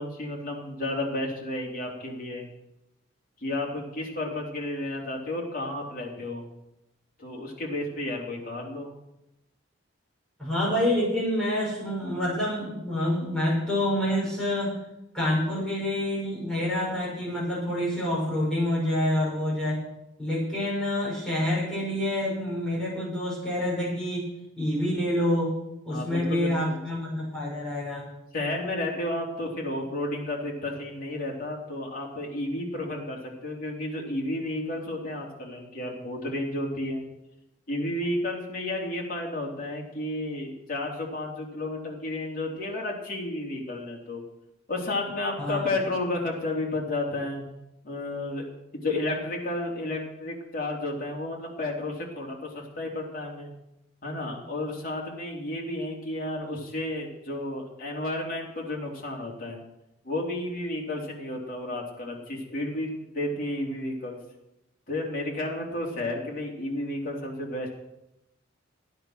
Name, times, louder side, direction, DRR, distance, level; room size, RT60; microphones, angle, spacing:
voice 1, 0.0-2.4 3.4-6.5 7.2-8.9 25.9-26.8 28.3-37.0 37.7-44.2 44.7-47.4 47.8-48.5 48.7-53.5 54.0-59.6 60.0-64.2 64.9-67.7, left 1 dB, 45° left, -2 dB, 3.2 m, -32 dB
voice 2, 10.4-14.8 15.1-19.8 20.2-24.2 24.6-25.5 25.8-28.1 45.4-45.7, left 1 dB, 5° left, -8 dB, 6.5 m, -27 dB
13.5 x 9.4 x 6.5 m, 0.89 s
head